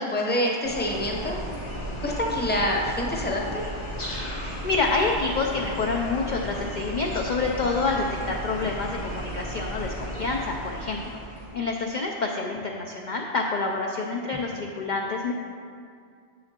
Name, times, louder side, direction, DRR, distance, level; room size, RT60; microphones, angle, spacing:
voice 1, 0.0-1.4 2.0-3.7, left 1 dB, 10° left, -1 dB, 0.8 m, -26 dB
sound 1, 0.6-11.5, equal, 90° left, 2.2 m, -34 dB
voice 2, 4.4-11.2 11.5-15.3, left 3 dB, 55° left, 0 dB, 0.6 m, -27 dB
9.5 x 6.9 x 2.9 m, 2.2 s
omnidirectional pair, 1.1 m